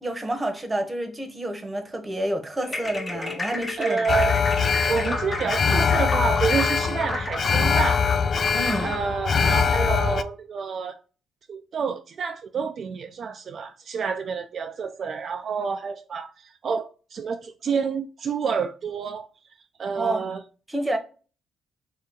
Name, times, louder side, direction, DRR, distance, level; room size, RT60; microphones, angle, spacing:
voice 1, 0.0-4.1 8.5-9.0 19.9-20.3 20.7-21.0, right 1 dB, 15° right, 0.9 m, -29 dB
sound 1, 2.6-9.1, left 2 dB, 25° left, 0.8 m, -33 dB
voice 2, 3.8-4.4 4.9-8.0 8.8-11.0 11.5-19.3 19.8-20.4, right 5 dB, 55° right, 0.3 m, -28 dB
Alarm, 4.1-10.2, left 6 dB, 50° left, 0.3 m, -23 dB
3.3 x 2.8 x 3.5 m
cardioid pair, 90°, 0 cm